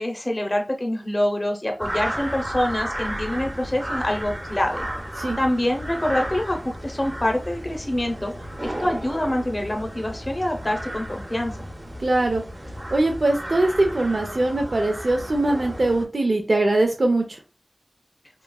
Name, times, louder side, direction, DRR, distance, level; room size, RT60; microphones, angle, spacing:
voice 1, 0.0-4.9 5.4-8.3 8.6-11.7, left 1 dB, 45° left, 3 dB, 0.6 m, -25 dB
sound 1, 1.8-16.1, equal, 40° right, 0.8 m, -33 dB
voice 2, 12.0-12.4 12.9-17.4, right 2 dB, 80° right, 3 dB, 0.4 m, -21 dB
2.9 x 2.3 x 2.2 m, 0.31 s
wide cardioid pair, 40°, 0 cm